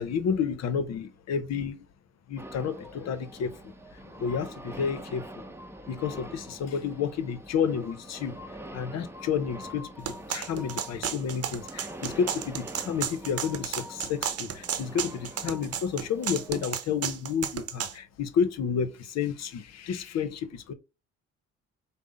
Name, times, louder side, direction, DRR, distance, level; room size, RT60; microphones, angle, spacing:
voice 1, 0.0-1.8 2.3-3.6 4.2-5.2 5.9-8.4 8.7-20.7, left 7 dB, 60° left, 0.7 m, -30 dB
sound 1, 2.4-16.7, equal, 10° right, 0.8 m, -44 dB
sound 2, 10.1-17.9, right 9 dB, 55° right, 0.8 m, -33 dB
5.3 x 2.1 x 3.7 m
supercardioid pair, 70°, 29 cm